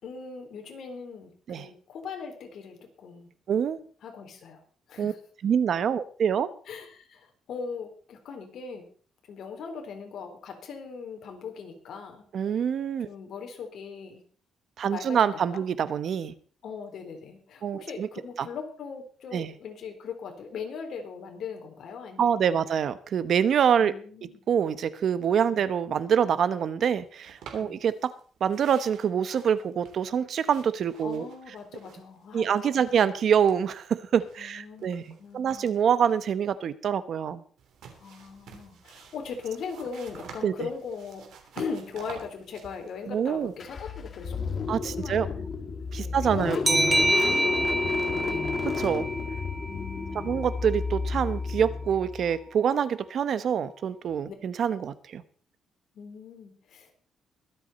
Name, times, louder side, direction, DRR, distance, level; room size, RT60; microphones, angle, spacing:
voice 1, 0.0-3.3 4.0-4.6 4.9-5.2 6.7-8.9 9.3-12.3 13.0-14.2 14.8-15.6 16.6-22.6 23.8-24.4 25.5-25.7 27.6-27.8 31.0-33.0 34.4-35.7 38.0-41.3 41.6-45.5 46.0-46.6 47.0-48.5 49.7-50.4 54.3-54.4 55.9-56.9, left 5 dB, 65° left, 3 dB, 3.8 m, -40 dB
voice 2, 3.5-3.8 5.0-5.1 5.4-6.5 12.3-13.1 14.8-16.3 17.6-18.1 18.4-18.5 19.3-19.5 22.2-23.9 24.5-28.1 28.4-31.3 32.3-35.0 35.3-37.4 40.4-40.7 43.1-43.5 44.7-45.3 45.9-47.1 48.8-49.1 50.2-55.2, right 8 dB, 60° right, 14 dB, 0.9 m, -26 dB
sound 1, 27.3-28.2 28.5-32.2 32.5-33.9 34.2-36.4 37.6-43.9, right 6 dB, 80° right, 3.3 m, -49 dB
Car / Engine starting, 43.6-52.4, left 4 dB, 40° left, 2.0 m, -32 dB
sound 2, 46.7-50.0, right 1 dB, 10° right, 0.7 m, -27 dB
23.0 x 8.2 x 4.2 m, 0.43 s
cardioid pair, 120°, 0 cm